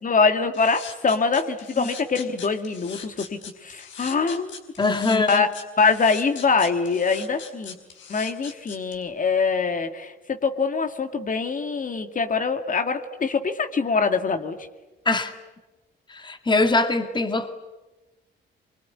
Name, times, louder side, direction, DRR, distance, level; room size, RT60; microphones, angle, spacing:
voice 1, 0.0-4.6 5.1-5.5 5.8-7.8 8.1-14.6, left 4 dB, 40° left, 7 dB, 2.2 m, -24 dB
sound 1, 0.5-9.0, left 6 dB, 70° left, 4.5 m, -40 dB
voice 2, 4.8-5.5 15.1-15.3 16.1-17.6, left 3 dB, 25° left, 8 dB, 2.1 m, -22 dB
24.0 x 24.0 x 9.7 m, 1.1 s
cardioid pair, 90°, 20 cm